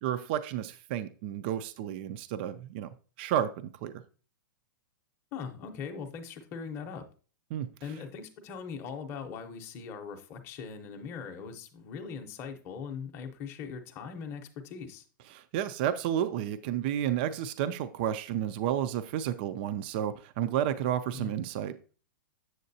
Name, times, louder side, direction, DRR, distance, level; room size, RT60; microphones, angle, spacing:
voice 1, 0.0-2.9 3.2-3.9 7.5-7.7 15.3-21.7, right 10 dB, 30° right, 12 dB, 0.3 m, -31 dB
voice 2, 5.3-7.0 7.8-15.0 21.1-21.4, left 6 dB, 20° left, 4 dB, 0.7 m, -40 dB
7.7 x 7.2 x 2.7 m, 0.37 s
hypercardioid pair, 170°, 11 cm